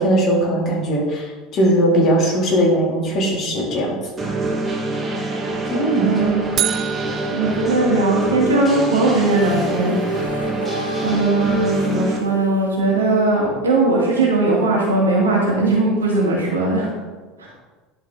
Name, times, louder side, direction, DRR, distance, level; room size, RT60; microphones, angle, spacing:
voice 1, 0.0-4.0 5.7-6.1, right 1 dB, 40° left, -2 dB, 2.5 m, -19 dB
sound 1, 4.2-12.2, right 2 dB, 20° right, 1.6 m, -25 dB
voice 2, 6.0-6.5 7.3-10.0 11.0-16.9 17.4-17.5, right 2 dB, 80° right, -3 dB, 2.1 m, -19 dB
sound 2, 6.6-8.7, right 11 dB, 40° right, 0.4 m, -28 dB
sound 3, 9.2-13.4, left 2 dB, 85° left, 0.6 m, -32 dB
11.0 x 4.8 x 3.8 m, 1.3 s
figure-of-eight pair, 70°, 0 cm